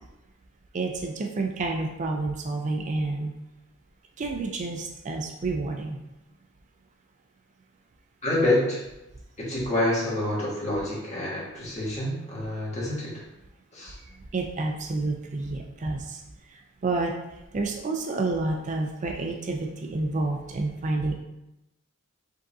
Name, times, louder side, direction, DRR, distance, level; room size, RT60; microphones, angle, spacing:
voice 1, 0.7-3.3 4.2-6.0 14.3-16.2 16.5-17.1 17.5-21.1, right 3 dB, 35° right, 3 dB, 0.4 m, -29 dB
voice 2, 8.2-8.8 9.4-13.2 13.7-14.0, left 1 dB, 35° left, -6 dB, 1.6 m, -27 dB
5.2 x 3.7 x 2.7 m, 0.94 s
head